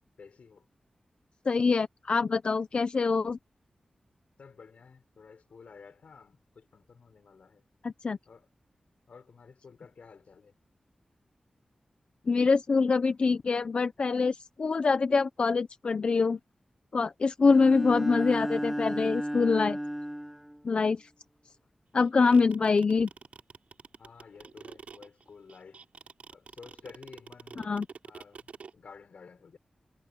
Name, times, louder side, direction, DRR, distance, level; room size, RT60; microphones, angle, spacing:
voice 1, 0.2-0.6 4.4-7.6 8.3-8.5 9.1-10.5 22.3-22.4 24.0-25.8 26.3-27.6 28.0-29.6, left 5 dB, 80° left, 4.9 m, -52 dB
voice 2, 1.5-3.4 7.8-8.2 12.3-16.4 16.9-19.8 20.6-21.1 21.9-23.1 27.6-27.9, left 4 dB, 50° left, 0.6 m, -25 dB
Bowed string instrument, 17.4-20.6, equal, 5° right, 2.6 m, -33 dB
sound 1, 22.0-28.7, right 5 dB, 80° right, 5.1 m, -47 dB
wide cardioid pair, 130°, 2 cm